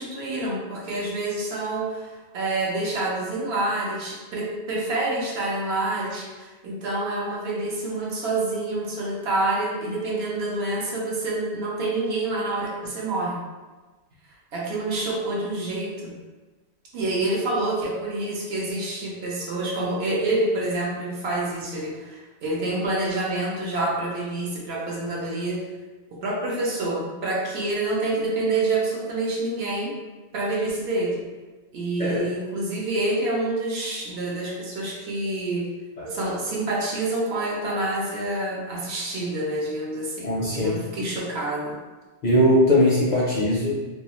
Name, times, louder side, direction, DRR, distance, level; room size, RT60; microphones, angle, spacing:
voice 1, 0.0-13.4 14.5-16.1 16.9-25.6 26.2-29.9 30.3-31.2 31.7-35.7 36.1-41.8, right 2 dB, 75° right, -4 dB, 0.9 m, -27 dB
voice 2, 40.2-40.8 42.2-43.8, left 1 dB, 55° left, -5 dB, 0.5 m, -20 dB
2.3 x 2.3 x 2.9 m, 1.2 s
omnidirectional pair, 1.1 m